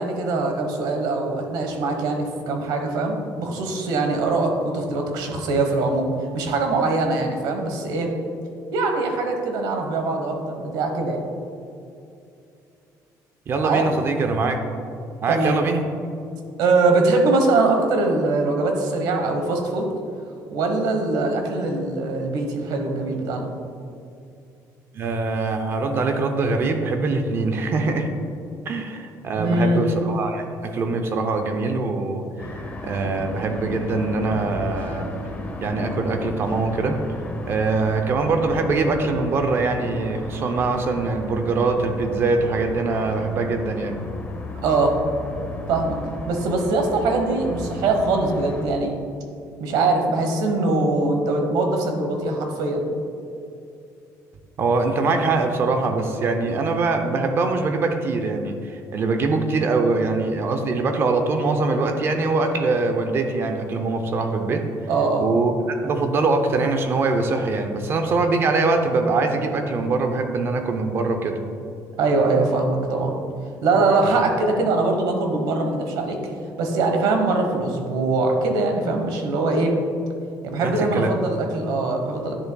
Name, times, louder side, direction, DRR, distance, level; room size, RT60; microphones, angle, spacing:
voice 1, 0.0-8.1 8.7-11.2 13.6-13.9 15.3-15.6 16.6-19.9 20.5-23.5 29.3-29.8 44.6-44.9 45.7-46.0 46.3-48.9 49.6-52.8 64.9-65.3 72.0-73.2 73.6-76.3 76.6-79.8 80.4-82.3, right 3 dB, 75° right, 3 dB, 1.1 m, -22 dB
voice 2, 13.5-14.6 15.2-15.8 24.9-28.1 28.7-32.3 32.8-35.1 35.6-37.0 37.5-44.0 54.6-64.6 65.2-65.5 65.8-71.4 80.6-81.1, right 3 dB, 35° right, 6 dB, 0.5 m, -23 dB
sound 1, 32.4-48.6, left 2 dB, 20° left, 0.7 m, -35 dB
10.5 x 6.7 x 2.2 m, 2.6 s
cardioid pair, 180°, 7 cm